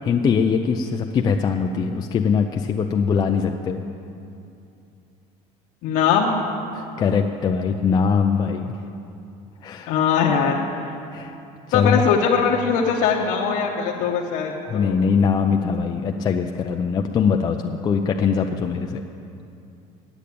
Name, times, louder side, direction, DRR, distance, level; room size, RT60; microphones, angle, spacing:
voice 1, 0.0-3.8 6.7-8.8 9.6-10.0 11.1-11.4 11.7-12.0 14.7-19.0, left 6 dB, 25° left, 3 dB, 0.4 m, -22 dB
voice 2, 5.8-6.3 9.9-10.5 11.7-14.9, left 6 dB, 70° left, -2 dB, 1.0 m, -21 dB
9.0 x 8.4 x 8.4 m, 2.7 s
cardioid pair, 155°, 15 cm